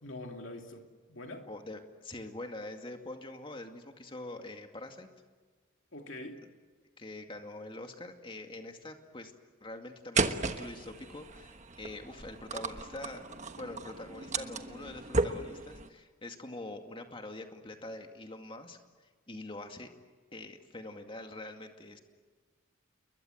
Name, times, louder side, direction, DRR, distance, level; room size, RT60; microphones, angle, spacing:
voice 1, 0.0-1.5 5.9-6.5, left 1 dB, 65° left, 3 dB, 2.8 m, -44 dB
voice 2, 1.5-5.1 7.0-9.3 9.6-13.2 13.6-18.8 19.3-19.9 20.3-22.0, left 2 dB, 25° left, 5 dB, 2.2 m, -44 dB
sound 1, 10.2-15.9, right 3 dB, 35° right, 1.3 m, -35 dB
29.5 x 22.0 x 8.0 m, 1.4 s
head